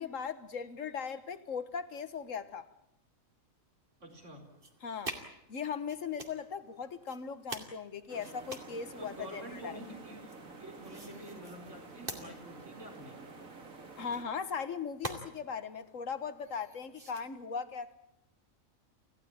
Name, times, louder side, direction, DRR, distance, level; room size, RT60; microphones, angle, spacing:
voice 1, 0.0-2.7 4.8-5.2 5.5-9.8 14.0-18.0, left 6 dB, 75° left, 1.7 m, -38 dB
voice 2, 4.0-4.5 9.0-13.2, right 1 dB, 65° right, 4.9 m, -48 dB
sound 1, 4.1-17.2, right 2 dB, 45° right, 2.8 m, -48 dB
sound 2, 8.1-14.2, right 3 dB, 85° right, 2.8 m, -50 dB
27.5 x 16.0 x 8.9 m
omnidirectional pair, 1.4 m